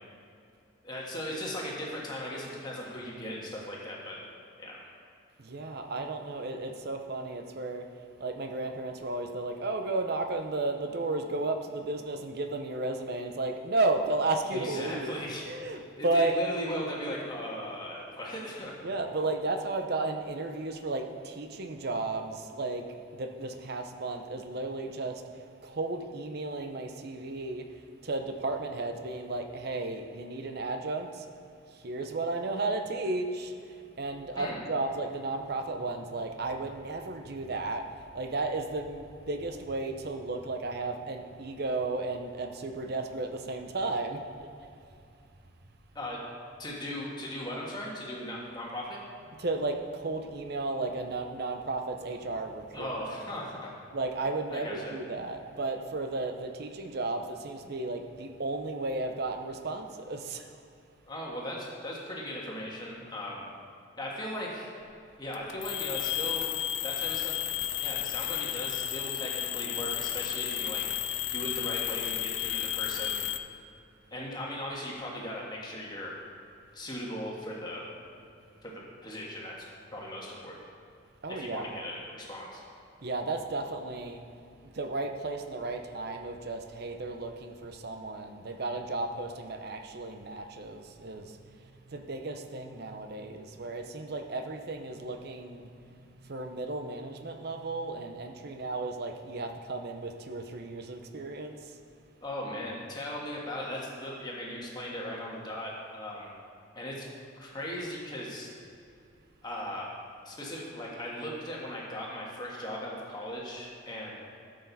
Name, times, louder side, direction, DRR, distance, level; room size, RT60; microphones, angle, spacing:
voice 1, 0.8-4.2 4.6-4.8 14.5-15.4 16.0-18.9 34.4-34.6 45.9-46.2 46.6-49.0 52.7-53.7 54.5-54.9 61.1-63.5 64.0-64.7 65.2-66.5 66.8-67.4 67.8-70.8 71.3-73.2 74.1-76.1 76.7-77.9 78.6-79.6 79.9-80.6 81.3-82.6 102.2-106.3 106.7-107.0 107.4-108.5 109.4-109.9 110.2-114.1, left 1 dB, 20° left, -3 dB, 1.5 m, -38 dB
voice 2, 5.4-7.9 8.2-15.1 15.4-16.4 18.8-25.2 25.6-27.7 28.0-31.3 31.7-37.9 38.1-44.2 49.4-52.9 53.9-60.5 81.2-81.7 83.0-84.2 84.6-91.4 91.9-101.7, right 2 dB, 50° right, 6 dB, 0.7 m, -34 dB
sound 1, 65.3-73.4, left 11 dB, 65° left, 0.4 m, -32 dB
13.0 x 6.5 x 4.1 m, 2.5 s
head